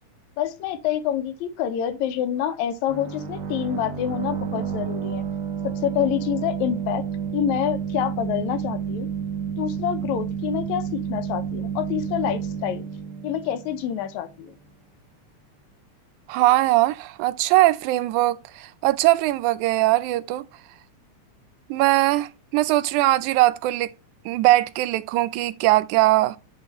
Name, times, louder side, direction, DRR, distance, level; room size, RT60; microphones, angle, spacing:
voice 1, 0.4-5.2 5.6-7.0 7.3-9.1 9.6-12.8 13.2-14.5, left 10 dB, 80° left, 2.1 m, -27 dB
sound 1, 2.9-14.4, right 7 dB, 60° right, 1.1 m, -30 dB
voice 2, 16.3-20.5 21.7-23.9 24.3-26.4, right 17 dB, 90° right, 2.0 m, -20 dB
9.7 x 3.8 x 3.1 m
omnidirectional pair, 3.4 m